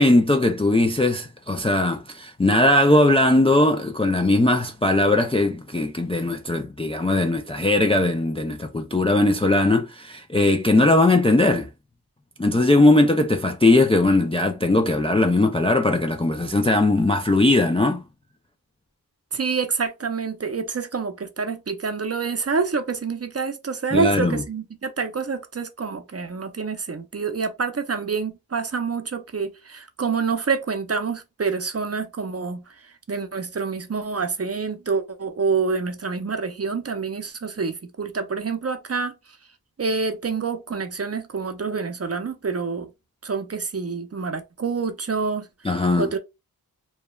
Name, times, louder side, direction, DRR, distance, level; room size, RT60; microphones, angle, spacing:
voice 1, 0.0-11.7 12.4-18.0 23.9-24.4 45.6-46.1, left 2 dB, 15° left, 0.3 m, -19 dB
voice 2, 19.3-39.1 39.8-42.9 43.2-45.5 46.0-46.2, right 5 dB, 40° right, 0.5 m, -27 dB
3.0 x 2.2 x 2.2 m
wide cardioid pair, 45°, 38 cm